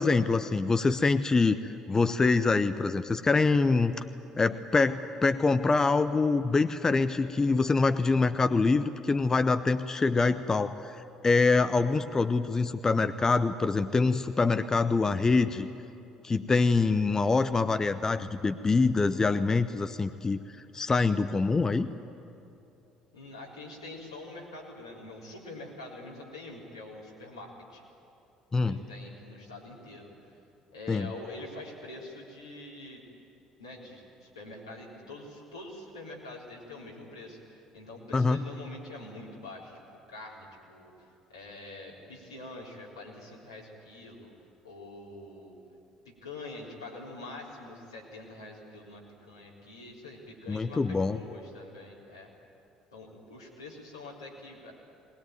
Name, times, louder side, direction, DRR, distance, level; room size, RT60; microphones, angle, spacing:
voice 1, 0.0-1.6 1.9-3.9 4.4-15.7 16.2-20.4 20.7-21.9 28.5-28.8 30.9-31.1 38.1-38.4 50.5-51.2, left 4 dB, 25° left, 11 dB, 0.8 m, -25 dB
voice 2, 23.1-27.8 28.6-30.3 30.7-33.0 33.6-39.8 40.1-44.3 44.6-45.6 46.0-52.3 52.9-54.7, left 2 dB, 90° left, -5 dB, 3.8 m, -45 dB
20.5 x 20.5 x 9.3 m, 2.8 s
figure-of-eight pair, 55°, 2 cm